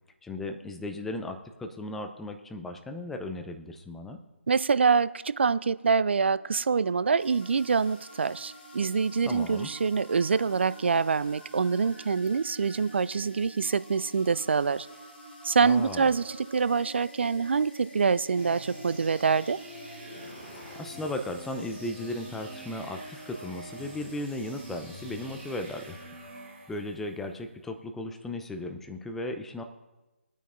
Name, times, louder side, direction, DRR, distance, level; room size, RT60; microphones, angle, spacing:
voice 1, 0.2-4.2 9.3-9.7 15.6-16.1 20.8-26.0 26.7-29.6, left 1 dB, 5° left, 5 dB, 0.5 m, -36 dB
voice 2, 4.5-14.9 15.4-19.6, right 5 dB, 55° right, 17 dB, 0.4 m, -25 dB
sound 1, 5.7-20.8, right 1 dB, 30° left, 3.9 m, -49 dB
sound 2, 7.2-26.1, left 3 dB, 45° left, 2.3 m, -56 dB
sound 3, 18.4-27.2, right 1 dB, 15° right, 2.7 m, -46 dB
21.0 x 9.2 x 2.6 m, 1.1 s
figure-of-eight pair, 150°, 7 cm